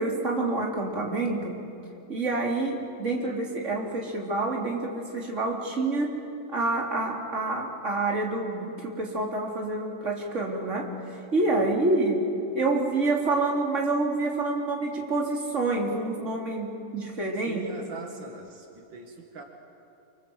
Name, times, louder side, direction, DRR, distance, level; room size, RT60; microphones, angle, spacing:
voice 1, 0.0-1.6 2.1-6.2 6.5-12.3 12.5-17.7, right 2 dB, 40° right, -1 dB, 3.7 m, -27 dB
voice 2, 17.5-19.4, right 3 dB, 80° right, 3 dB, 2.8 m, -41 dB
28.5 x 25.5 x 8.0 m, 2.8 s
omnidirectional pair, 2.0 m